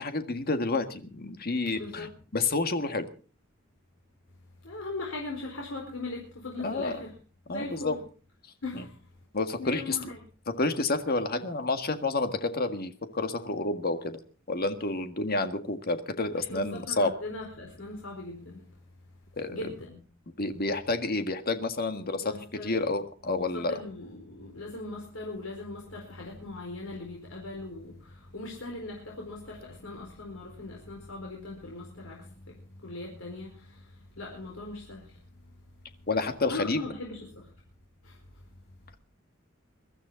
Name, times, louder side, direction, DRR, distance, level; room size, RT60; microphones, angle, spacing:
voice 1, 0.0-3.1 6.6-7.0 7.5-8.0 8.7-8.8 9.3-10.0 10.6-14.2 14.5-17.1 19.4-19.6 20.4-22.3 22.6-23.8 36.1-36.8, left 3 dB, 50° left, 1.8 m, -29 dB
voice 2, 1.7-2.2 4.6-7.2 7.5-8.0 8.6-9.0 9.6-10.2 16.3-18.7 19.5-20.0 22.2-22.8 23.3-35.2 36.5-37.5 38.0-38.2, left 2 dB, 75° left, 4.5 m, -40 dB
22.5 x 13.0 x 4.0 m
head